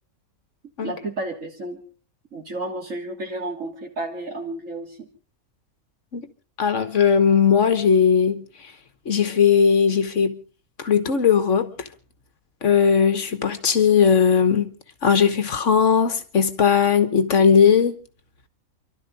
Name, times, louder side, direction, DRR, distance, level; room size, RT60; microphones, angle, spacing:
voice 1, 0.8-1.8 2.3-5.1, right 2 dB, 60° right, 3.2 m, -32 dB
voice 2, 6.6-8.4 9.1-10.4 10.8-11.7 12.6-14.7 15.0-18.0, left 7 dB, 60° left, 1.4 m, -18 dB
29.5 x 12.0 x 4.0 m
omnidirectional pair, 1.5 m